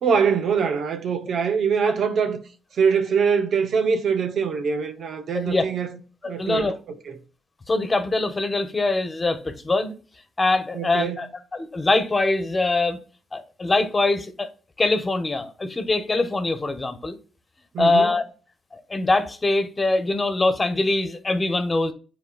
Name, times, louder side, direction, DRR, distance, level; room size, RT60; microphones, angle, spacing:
voice 1, 0.0-2.4 2.8-6.0 6.2-6.7 7.1-7.2 10.7-11.3 17.7-18.2, right 6 dB, 70° right, 0.8 m, -23 dB
voice 2, 5.3-5.7 6.2-6.7 7.7-9.9 10.4-13.0 13.3-14.5 14.8-17.2 17.8-18.2 18.7-21.9, left 2 dB, 30° left, 1.2 m, -23 dB
9.4 x 4.2 x 2.4 m
supercardioid pair, 60°, 0 cm